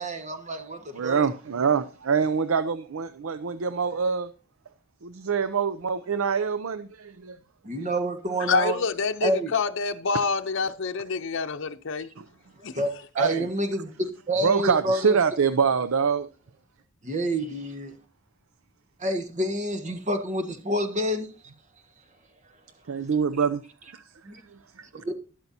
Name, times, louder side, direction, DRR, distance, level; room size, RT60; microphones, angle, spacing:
voice 1, 0.0-1.3 7.6-8.8 9.2-9.5 12.7-12.9 13.2-15.2 17.0-17.9 19.0-21.3 24.2-24.4 25.0-25.1, right 1 dB, 35° right, 1.5 m, -28 dB
voice 2, 0.9-4.3 5.0-7.4 7.8-7.9 12.2-12.3 13.2-13.5 14.4-16.3 22.9-23.6 23.9-24.1 24.5-24.9, right 6 dB, 80° right, 0.5 m, -25 dB
voice 3, 8.5-12.1 12.6-12.8, left 4 dB, 65° left, 0.7 m, -27 dB
12.0 x 12.0 x 2.8 m
head